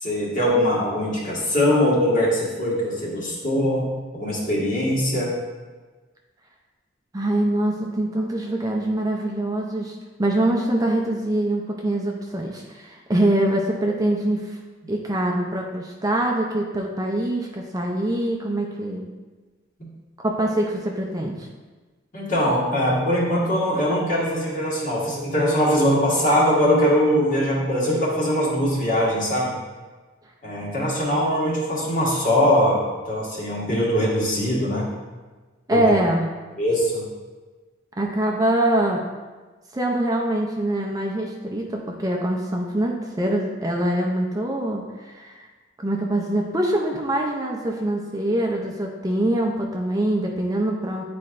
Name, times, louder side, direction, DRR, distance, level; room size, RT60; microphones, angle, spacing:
voice 1, 0.0-3.9 4.1-5.3 19.8-19.9 22.1-29.5 30.4-34.9 35.7-35.8 36.6-37.0, equal, 40° left, -5 dB, 1.6 m, -21 dB
voice 2, 7.1-14.6 14.9-19.1 20.2-21.5 35.7-36.3 38.0-39.0 39.7-45.5 45.8-51.0, right 1 dB, 20° right, 0 dB, 0.5 m, -24 dB
9.6 x 4.2 x 2.5 m, 1.3 s
head